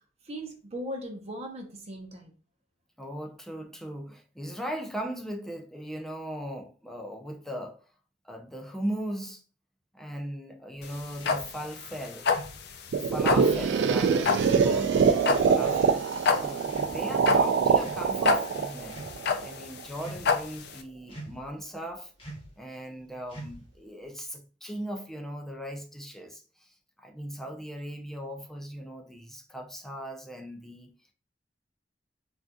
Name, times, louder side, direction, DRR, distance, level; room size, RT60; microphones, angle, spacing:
voice 1, 0.2-2.3, equal, 35° right, 0.8 m, -38 dB
voice 2, 3.0-7.8 8.2-9.4 9.9-12.3 12.9-19.0 19.4-22.1 22.6-26.7 27.0-30.9, equal, ahead, 0.4 m, -38 dB
sound 1, 10.8-20.8, left 5 dB, 65° left, 0.4 m, -29 dB
sound 2, 11.2-11.5 12.3-12.6 13.4-13.7 14.5-14.8 15.6-15.9 16.7-17.2 17.7-18.1 18.8-19.2 20.0-20.4 21.1-21.5 22.2-22.5 23.3-23.8, right 1 dB, 30° left, 1.0 m, -43 dB
sound 3, 12.9-19.8, right 6 dB, 75° right, 0.3 m, -24 dB
3.7 x 2.5 x 2.3 m
head